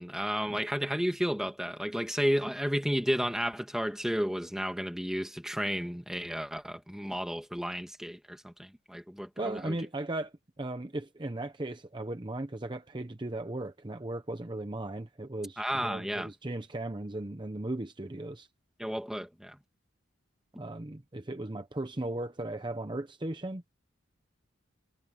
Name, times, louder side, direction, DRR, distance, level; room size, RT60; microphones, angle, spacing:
voice 1, 0.0-9.7 15.6-16.3 18.8-19.6, equal, 5° right, 1.7 m, -32 dB
voice 2, 9.4-18.5 20.6-23.6, right 1 dB, 25° right, 0.8 m, -37 dB
head